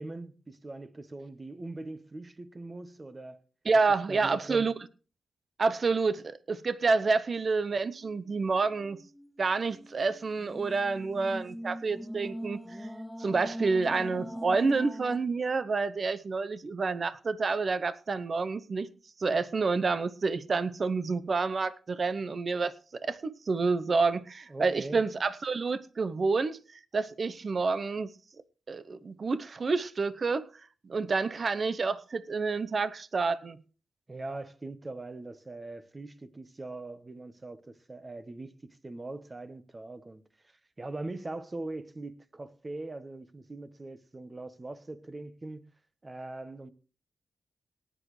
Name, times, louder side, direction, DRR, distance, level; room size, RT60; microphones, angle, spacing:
voice 1, 0.0-3.4 4.1-4.7 24.5-25.0 34.1-45.7 46.0-46.7, right 2 dB, 30° right, 1.2 m, -41 dB
voice 2, 3.7-4.7 5.6-9.0 9.4-12.9 13.2-18.9 19.2-28.1 28.7-30.5 30.8-33.6, right 4 dB, 50° right, 0.8 m, -29 dB
sound 1, 8.0-15.2, equal, 5° right, 2.4 m, -42 dB
18.5 x 10.0 x 3.2 m
cardioid pair, 65°, 0 cm